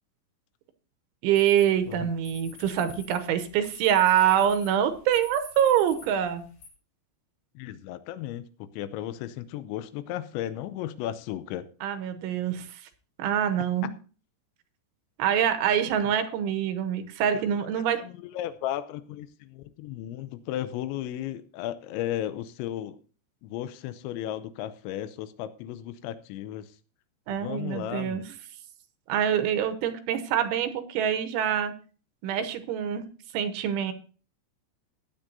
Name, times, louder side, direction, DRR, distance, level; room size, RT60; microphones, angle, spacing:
voice 1, 1.2-6.5 11.8-12.8 13.2-13.9 15.2-18.0 27.3-28.2 29.1-31.7 32.2-33.1 33.3-33.9, right 9 dB, 80° right, 8 dB, 3.3 m, -25 dB
sound 1, 1.3-6.7, left 4 dB, 55° left, 4.8 m, -49 dB
voice 2, 7.6-11.7 17.3-17.4 18.0-23.0 23.4-26.7 27.4-28.2, left 12 dB, 80° left, 13 dB, 2.8 m, -35 dB
15.5 x 10.0 x 2.7 m, 0.38 s
omnidirectional pair, 5.6 m